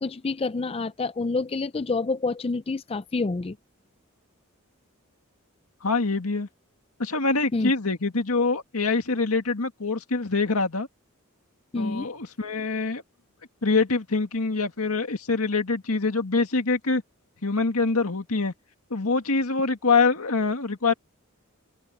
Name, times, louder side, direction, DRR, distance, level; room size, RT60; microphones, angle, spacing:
voice 1, 0.0-3.6 7.5-7.7 11.7-12.1, left 3 dB, 25° left, 0.4 m, -28 dB
voice 2, 5.8-6.5 7.0-10.9 11.8-13.0 13.6-17.0 17.4-18.5 18.9-20.9, left 3 dB, 85° left, 2.0 m, -24 dB
open air
head